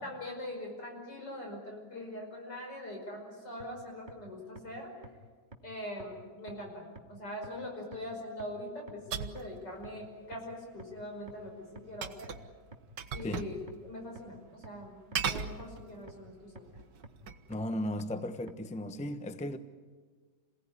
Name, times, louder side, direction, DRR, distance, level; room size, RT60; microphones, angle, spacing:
voice 1, 0.0-4.9 5.6-12.3 13.1-13.6 13.8-16.7, left 1 dB, 75° left, 6.1 m, -42 dB
sound 1, 3.6-3.7 4.1-4.2 4.6-4.7 5.0-5.1 5.5-5.6 6.0-6.1 6.5-6.6 7.0-7.1 7.4-7.5 7.9-8.0 8.4-8.5 8.9-9.0 9.4-9.5 9.8-9.9 10.3-10.4 10.8-10.9 11.3-11.4 11.8-11.9 12.2-12.3 12.7-12.8 13.2-13.3 13.7-13.8 14.2-14.3 14.6-14.7 15.1-15.2 15.6-15.7 16.1-16.2 16.6-16.7 17.0-17.1 17.5-17.6 18.0-18.1 18.5-18.6, right 3 dB, 25° right, 1.6 m, -48 dB
sound 2, 9.1-9.5 12.0-12.5 13.0-13.6 13.9-14.0 15.1-16.1 16.7-17.5, right 7 dB, 85° right, 1.8 m, -37 dB
voice 2, 13.2-13.6 17.5-19.6, left 1 dB, 5° left, 0.7 m, -36 dB
27.5 x 17.5 x 9.9 m
omnidirectional pair, 1.9 m